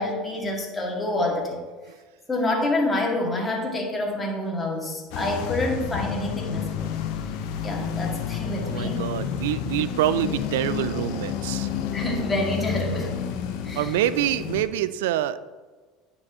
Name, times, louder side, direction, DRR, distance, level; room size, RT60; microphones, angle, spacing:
voice 1, 0.0-1.6 2.3-6.9 7.6-9.0 11.9-13.2 13.6-13.9, left 1 dB, 20° left, -1 dB, 1.9 m, -27 dB
sound 1, 5.1-14.6, left 8 dB, 70° left, 0.7 m, -30 dB
voice 2, 8.6-11.7 13.8-15.4, right 12 dB, 80° right, 15 dB, 0.3 m, -26 dB
9.8 x 4.4 x 3.7 m, 1.3 s
hypercardioid pair, 85°, 0 cm